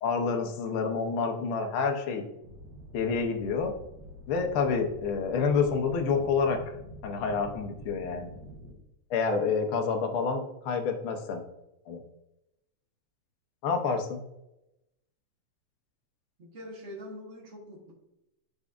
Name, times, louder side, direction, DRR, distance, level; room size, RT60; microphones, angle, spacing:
voice 1, 0.0-2.2 2.9-3.7 4.3-6.6 7.0-8.3 9.1-11.4 11.9-12.0 13.6-14.2, left 5 dB, 80° left, 3 dB, 1.2 m, -28 dB
sound 1, 2.4-8.7, equal, 55° right, 1.1 m, -47 dB
voice 2, 16.4-17.9, equal, 70° right, -3 dB, 0.7 m, -44 dB
12.0 x 4.0 x 2.5 m, 0.88 s
omnidirectional pair, 3.6 m